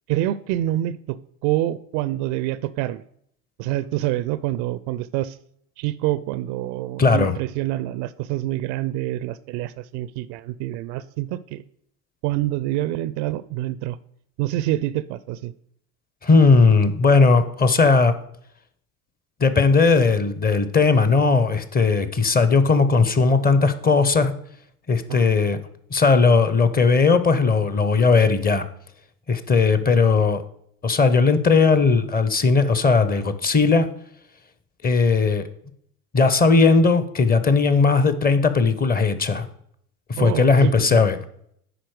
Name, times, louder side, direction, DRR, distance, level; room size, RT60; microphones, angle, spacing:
voice 1, 0.1-3.0 3.6-5.4 5.8-11.6 12.2-14.0 14.4-15.5 25.1-25.3 40.2-41.0, right 14 dB, 50° right, 17 dB, 0.4 m, -26 dB
voice 2, 7.0-7.3 16.2-18.1 19.4-24.3 24.9-25.6 25.9-28.6 29.3-30.4 30.8-33.9 34.8-35.4 36.1-39.5 40.1-41.2, left 4 dB, 20° left, 12 dB, 0.7 m, -17 dB
10.0 x 4.3 x 4.7 m, 0.69 s
hypercardioid pair, 75°, 46 cm